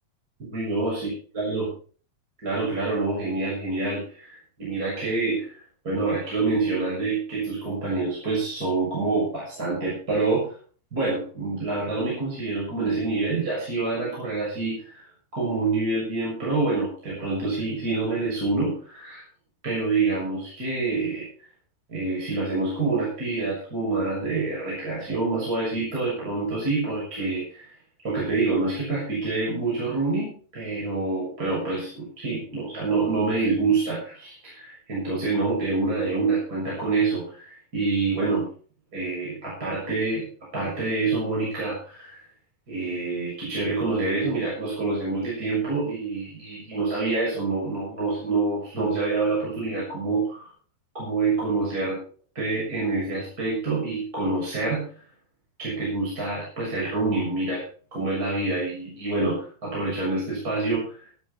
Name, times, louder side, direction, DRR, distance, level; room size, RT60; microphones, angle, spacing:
voice 1, 0.5-1.7 2.4-5.5 5.8-10.5 10.9-15.0 15.3-19.2 19.6-21.3 21.9-27.6 28.0-38.5 38.9-40.3 40.5-42.2 42.7-50.5 50.9-52.0 52.4-54.8 55.6-57.6 57.9-61.0, right 3 dB, 20° right, -5 dB, 7.3 m, -27 dB
18.0 x 10.5 x 4.4 m, 0.41 s
omnidirectional pair, 4.8 m